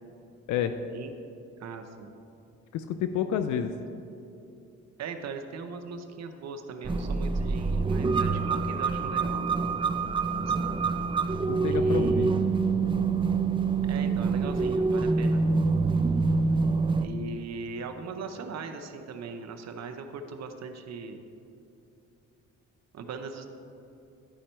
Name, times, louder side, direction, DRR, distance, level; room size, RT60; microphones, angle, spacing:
voice 1, 1.6-2.1 5.0-9.4 10.4-10.5 11.7-12.3 13.8-15.4 17.0-21.2 22.9-23.5, right 5 dB, 60° right, 6 dB, 0.7 m, -39 dB
voice 2, 2.7-3.7 11.5-12.3, left 9 dB, 75° left, 9 dB, 0.5 m, -29 dB
sound 1, 6.8-17.1, right 4 dB, 15° right, 0.4 m, -26 dB
11.0 x 5.1 x 4.4 m, 2.7 s
cardioid pair, 90°, 30 cm